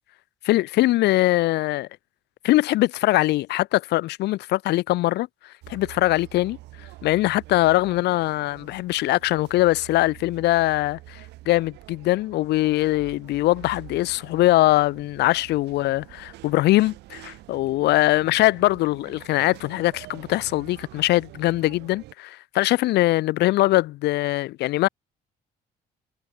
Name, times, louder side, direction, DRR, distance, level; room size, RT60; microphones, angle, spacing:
voice 1, 0.4-1.9 2.4-5.3 5.7-6.6 7.0-24.9, left 17 dB, 80° left, 2.5 m, -22 dB
sound 1, 5.6-22.1, right 18 dB, 85° right, 7.2 m, -46 dB
cardioid pair, 110°, 17 cm